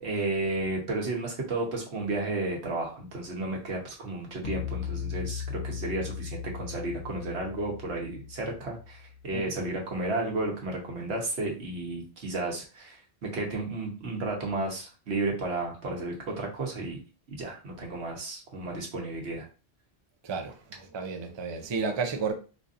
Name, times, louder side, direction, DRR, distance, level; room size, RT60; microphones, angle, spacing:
voice 1, 0.0-17.0 17.3-19.5, right 2 dB, 75° right, 1.3 m, -33 dB
sound 1, 4.4-9.8, left 8 dB, 65° left, 0.8 m, -38 dB
voice 2, 20.2-22.3, right 5 dB, 40° right, 0.4 m, -32 dB
4.4 x 2.6 x 2.5 m
omnidirectional pair, 1.1 m